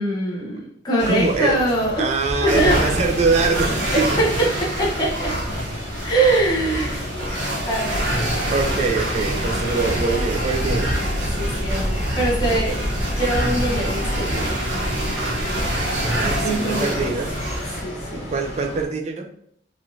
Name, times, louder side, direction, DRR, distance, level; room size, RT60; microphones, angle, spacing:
voice 1, 0.0-2.0 2.4-2.8 3.9-5.3 6.0-7.1 7.7-8.2 11.4-12.8 13.2-14.5 16.2-17.1 17.8-18.3, right 1 dB, 20° left, -4 dB, 0.7 m, -23 dB
sound 1, 1.0-18.8, equal, 70° left, 1.1 m, -35 dB
voice 2, 1.0-1.6 2.0-4.2 8.5-11.0 16.2-17.4 18.1-19.3, right 4 dB, 35° right, 4 dB, 0.3 m, -23 dB
sound 2, 2.5-17.8, equal, 75° right, 0.9 m, -25 dB
3.0 x 2.5 x 2.6 m, 0.68 s
head